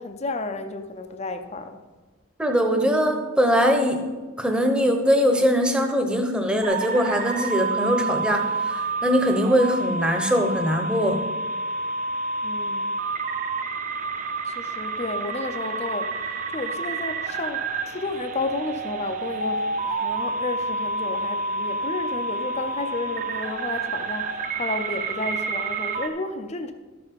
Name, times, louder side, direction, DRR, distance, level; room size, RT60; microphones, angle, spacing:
voice 1, 0.0-1.8 12.4-12.9 14.5-26.7, left 3 dB, 30° left, 8 dB, 0.6 m, -32 dB
voice 2, 2.4-4.1 4.4-11.3, equal, 5° right, 4 dB, 0.9 m, -22 dB
sound 1, 6.6-26.1, right 3 dB, 35° right, 0.9 m, -29 dB
13.0 x 6.8 x 5.3 m, 1.3 s
head